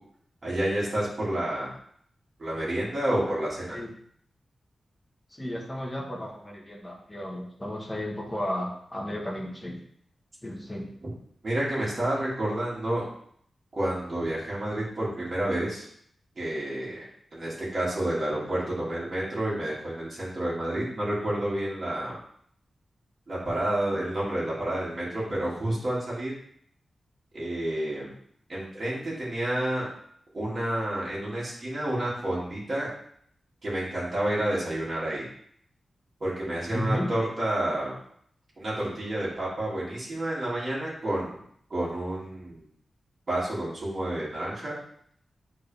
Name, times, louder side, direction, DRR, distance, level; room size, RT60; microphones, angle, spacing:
voice 1, 0.4-1.8 2.4-3.8 11.4-13.0 13.7-15.8 16.4-17.0 17.3-22.2 23.3-26.3 27.3-28.1 28.5-29.9 30.3-32.9 33.6-35.3 36.2-38.0 38.6-41.4 41.7-42.6 43.3-44.7, right 1 dB, 35° right, -8 dB, 2.7 m, -29 dB
voice 2, 5.3-9.8 10.4-10.9 36.7-37.1, left 1 dB, 10° left, -2 dB, 1.4 m, -33 dB
8.0 x 4.1 x 3.5 m, 0.65 s
wide cardioid pair, 175°, 0 cm